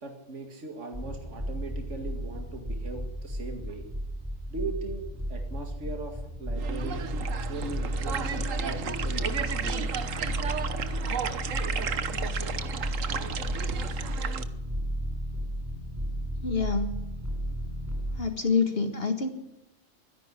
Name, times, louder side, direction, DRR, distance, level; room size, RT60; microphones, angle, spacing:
voice 1, 0.0-3.9 4.5-9.4, right 2 dB, 70° right, 4 dB, 2.4 m, -39 dB
sound 1, 0.9-18.2, equal, 15° right, 7.4 m, -33 dB
sound 2, 6.6-14.4, right 7 dB, 85° right, 1.5 m, -33 dB
voice 2, 16.4-17.0 18.2-19.3, left 5 dB, 50° left, 6 dB, 2.0 m, -27 dB
24.0 x 11.0 x 10.0 m, 0.89 s
omnidirectional pair, 1.3 m